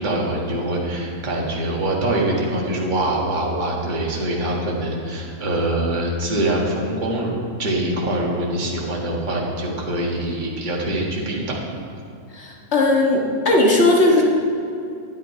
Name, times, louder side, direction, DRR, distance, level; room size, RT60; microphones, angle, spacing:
voice 1, 0.0-7.3 7.6-11.6, right 1 dB, 30° right, -3 dB, 1.7 m, -24 dB
voice 2, 12.3-14.2, left 2 dB, 45° left, -1 dB, 1.8 m, -17 dB
10.5 x 10.0 x 4.6 m, 2.6 s
omnidirectional pair, 1.7 m